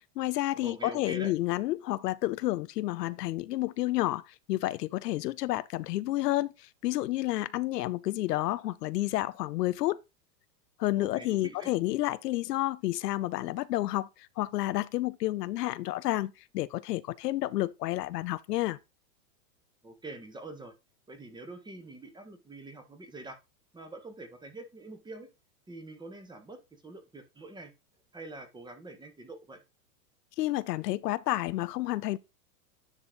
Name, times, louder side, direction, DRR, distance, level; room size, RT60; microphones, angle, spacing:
voice 1, 0.0-10.0 10.8-18.8 30.4-32.2, left 16 dB, 75° left, 0.6 m, -30 dB
voice 2, 0.6-1.3 11.0-11.7 19.8-20.7 21.1-23.4 23.7-25.3 25.7-27.7 28.1-29.6, right 2 dB, 10° right, 1.2 m, -45 dB
9.9 x 4.2 x 3.7 m
hypercardioid pair, 125°, 49 cm